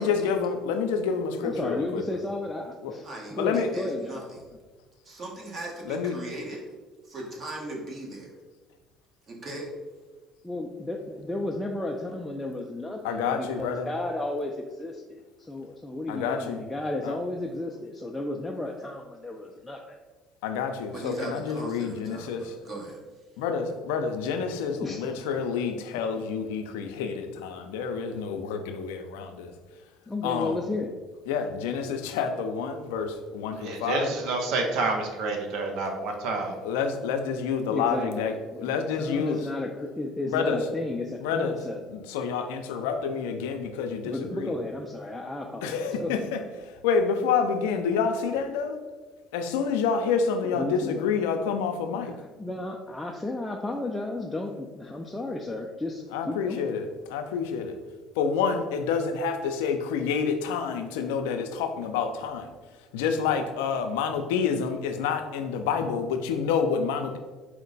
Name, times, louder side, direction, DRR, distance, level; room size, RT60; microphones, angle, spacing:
voice 1, 0.0-2.0 2.8-2.9 3.4-3.7 5.9-6.2 13.0-13.9 16.1-16.6 17.0-17.2 20.4-22.5 23.4-29.5 30.2-30.6 31.3-34.1 36.6-39.4 40.3-40.6 41.2-41.6 41.9-44.5 45.6-46.4 46.8-48.8 49.3-52.1 56.1-57.7 58.2-62.5 62.9-67.2, left 6 dB, 90° left, 6 dB, 0.4 m, -28 dB
voice 2, 1.4-4.2 4.5-4.6 10.4-20.0 24.8-25.1 30.1-30.9 37.7-41.8 44.0-46.2 50.6-51.0 52.2-56.7, left 2 dB, 10° left, 0 dB, 0.4 m, -33 dB
voice 3, 3.0-4.4 5.0-6.6 7.0-8.3 9.3-9.7 20.9-23.0, right 2 dB, 45° right, -1 dB, 1.2 m, -38 dB
voice 4, 33.6-36.6, right 3 dB, 70° right, 3 dB, 0.7 m, -28 dB
4.4 x 2.1 x 3.9 m, 1.3 s
supercardioid pair, 85°, 0 cm